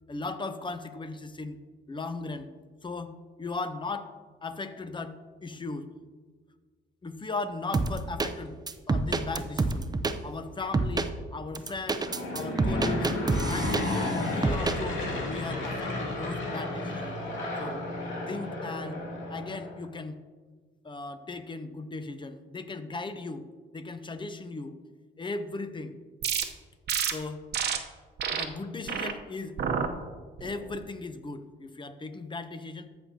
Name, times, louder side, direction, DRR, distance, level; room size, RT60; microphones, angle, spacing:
voice 1, 0.0-1.6 1.9-2.5 2.8-4.1 4.4-5.9 7.0-8.6 8.9-9.9 10.2-13.1 13.5-17.2 17.6-17.8 18.3-19.0 19.3-20.2 20.8-23.5 23.7-24.8 25.2-25.9 27.1-27.5 28.3-29.6 30.4-32.9, left 3 dB, 25° left, 10 dB, 0.7 m, -37 dB
sound 1, 7.7-8.3 8.7-10.2 10.7-11.1 11.6-14.1 14.4-14.8, right 3 dB, 20° right, 0.5 m, -27 dB
Aircraft / Engine, 11.9-19.8, left 1 dB, 75° left, 2.4 m, -32 dB
sound 2, 26.2-26.4 26.9-27.1 27.5-27.8 28.2-28.4 28.9-29.1 29.6-29.9 30.4-30.7, right 7 dB, 55° right, 0.9 m, -29 dB
14.0 x 6.2 x 2.8 m, 1.5 s
cardioid pair, 90°, 20 cm